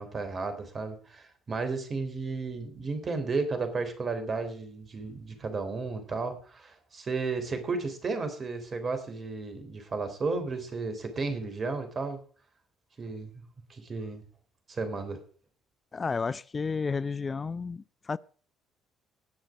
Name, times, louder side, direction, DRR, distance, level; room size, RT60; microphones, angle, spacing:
voice 1, 0.0-12.2 13.0-14.2 14.7-15.2, right 4 dB, 40° right, 3.6 m, -33 dB
voice 2, 15.9-18.2, left 5 dB, 35° left, 0.4 m, -32 dB
19.0 x 6.6 x 4.8 m
hypercardioid pair, 55°, 0 cm